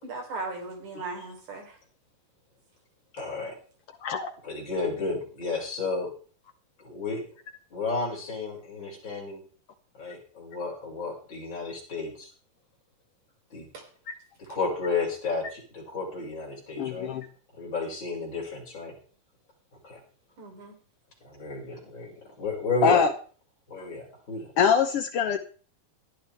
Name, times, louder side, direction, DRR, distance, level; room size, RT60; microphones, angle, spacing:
voice 1, 0.0-1.8 13.7-13.8 20.4-20.8, right 3 dB, 65° right, 3 dB, 5.2 m, -37 dB
voice 2, 3.1-3.6 4.4-6.1 6.8-7.2 7.7-9.4 10.0-12.3 13.5-13.7 14.4-17.1 17.5-19.0 19.8-20.0 21.2-23.0 23.7-24.5, left 3 dB, 30° left, -3 dB, 6.4 m, -32 dB
voice 3, 4.0-4.3 14.1-14.2 16.8-17.3 22.8-23.1 24.6-25.4, left 7 dB, 80° left, 7 dB, 1.3 m, -23 dB
18.5 x 12.5 x 3.5 m, 0.39 s
omnidirectional pair, 3.9 m